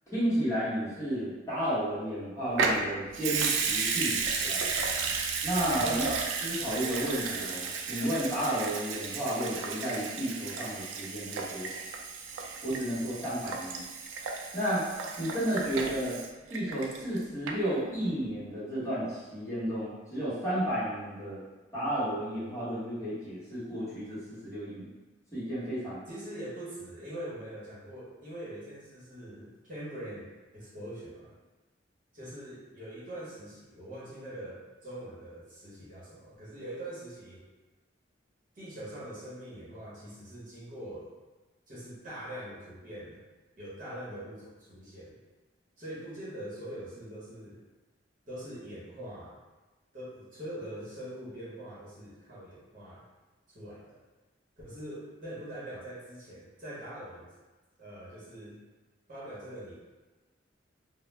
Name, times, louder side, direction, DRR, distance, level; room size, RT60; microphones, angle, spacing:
voice 1, 0.1-4.2 4.4-4.6 5.4-6.0 6.4-11.7 12.6-13.8 14.5-14.8 15.2-16.2 16.5-21.4 21.7-24.9 25.3-26.0, equal, 15° left, -12 dB, 1.0 m, -32 dB
Water tap faucet / Sink (filling or washing) / Liquid, 2.5-17.2 17.5-17.6, right 5 dB, 75° right, 0.3 m, -33 dB
voice 2, 5.7-6.2 26.1-30.3 30.5-31.3 32.1-37.4 38.5-41.1 41.7-43.2 43.6-45.2 45.8-47.6 48.3-49.4 49.9-53.0 53.5-54.0 54.6-57.3 57.8-58.6 59.1-59.7, right 1 dB, 45° right, -9 dB, 0.9 m, -43 dB
2.3 x 2.0 x 3.1 m, 1.2 s
head